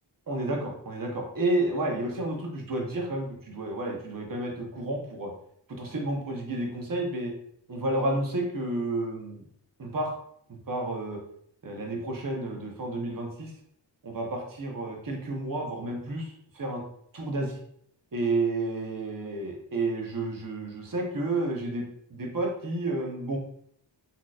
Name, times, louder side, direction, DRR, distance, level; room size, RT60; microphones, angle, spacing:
voice 1, 0.3-5.3 5.8-7.3 7.7-9.4 9.8-10.1 10.5-11.2 11.6-13.5 14.0-16.8 17.1-17.6 18.1-21.8 22.1-23.4, right 2 dB, 50° right, 0 dB, 0.9 m, -31 dB
4.1 x 2.9 x 2.4 m, 0.69 s
wide cardioid pair, 90°, 44 cm